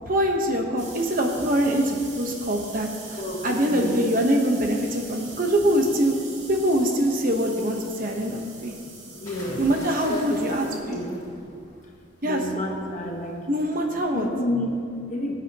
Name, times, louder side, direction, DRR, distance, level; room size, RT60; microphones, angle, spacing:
voice 1, 0.1-2.9 3.4-6.2 6.5-8.7 9.6-11.2 12.2-12.4 13.5-14.3, right 1 dB, 45° right, 2 dB, 1.1 m, -23 dB
sound 1, 0.8-10.8, right 4 dB, 85° right, 2.5 m, -43 dB
voice 2, 2.3-4.0 5.0-5.4 6.4-6.5 8.0-9.8 10.1-11.7 12.2-13.4 14.0-15.3, left 1 dB, 40° left, 0 dB, 1.3 m, -32 dB
sound 2, 9.2-12.0 13.2-13.5, equal, 20° left, 3.1 m, -42 dB
19.5 x 8.4 x 3.0 m, 2.3 s
head